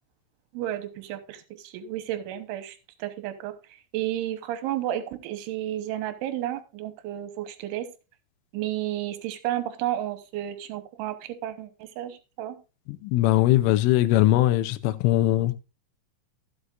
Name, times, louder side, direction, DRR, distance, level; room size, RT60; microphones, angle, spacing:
voice 1, 0.5-3.6 3.9-7.9 8.5-12.6, right 13 dB, 75° right, 3.3 m, -32 dB
voice 2, 12.9-15.6, left 16 dB, 80° left, 3.1 m, -21 dB
15.5 x 7.9 x 2.5 m
omnidirectional pair, 5.8 m